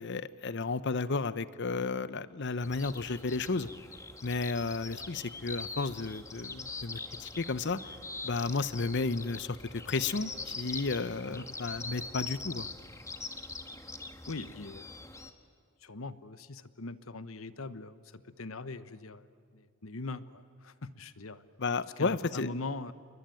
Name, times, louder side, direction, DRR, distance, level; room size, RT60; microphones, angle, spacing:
voice 1, 0.0-3.7 4.2-7.8 8.2-12.7 21.6-22.5, left 3 dB, 55° left, 16 dB, 0.8 m, -33 dB
sound 1, 2.6-15.3, left 3 dB, 15° left, 1.5 m, -43 dB
voice 2, 14.3-14.8 15.8-19.3 19.5-21.4 22.0-22.9, left 3 dB, 80° left, 14 dB, 1.1 m, -41 dB
28.0 x 22.0 x 9.2 m, 2.3 s
head